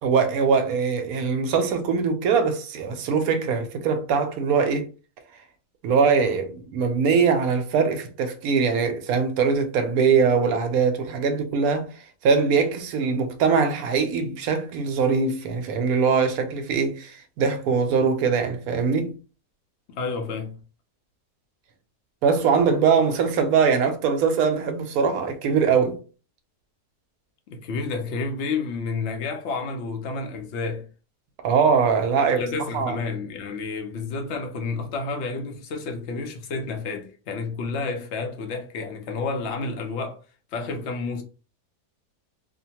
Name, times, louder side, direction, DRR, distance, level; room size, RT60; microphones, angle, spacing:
voice 1, 0.0-4.9 5.8-11.9 12.2-19.2 22.2-26.0 31.4-32.4 32.7-33.0, right 5 dB, 75° right, 1.0 m, -22 dB
voice 2, 19.9-20.6 27.5-30.9 32.4-40.2 40.5-41.2, left 4 dB, 60° left, 0.7 m, -30 dB
2.7 x 2.1 x 2.8 m
omnidirectional pair, 1.7 m